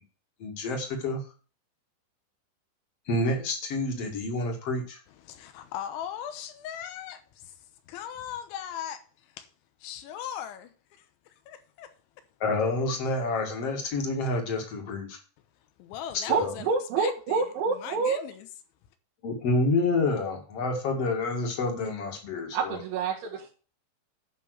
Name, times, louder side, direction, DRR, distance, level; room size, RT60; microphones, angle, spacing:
voice 1, 0.4-1.2 3.1-5.0 12.4-15.2 16.1-16.6 19.2-22.8, left 2 dB, 45° left, 2.3 m, -28 dB
voice 2, 5.2-7.6 7.9-9.5 9.8-11.9 15.8-16.7 17.0-18.5, left 10 dB, 85° left, 3.3 m, -39 dB
voice 3, 16.3-18.2 22.5-23.5, right 5 dB, 80° right, 4.1 m, -27 dB
11.0 x 5.8 x 6.5 m
omnidirectional pair, 5.4 m